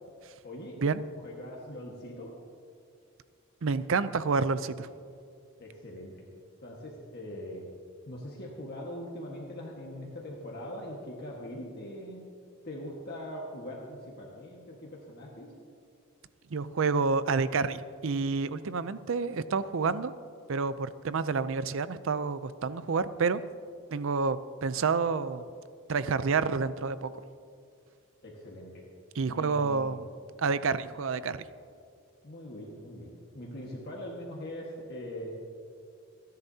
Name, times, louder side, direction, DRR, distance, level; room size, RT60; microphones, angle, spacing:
voice 1, 0.4-0.8 1.1-2.3 5.6-6.1 6.6-7.7 8.0-12.2 12.6-15.5 28.2-28.8 29.2-30.0 32.2-35.3, left 1 dB, 50° left, -3 dB, 1.6 m, -42 dB
voice 2, 3.6-4.9 16.5-20.1 20.5-23.4 23.9-25.5 25.9-27.1 29.2-30.1 30.4-31.4, right 4 dB, 60° right, 14 dB, 0.5 m, -29 dB
28.5 x 10.5 x 2.8 m, 2.3 s
head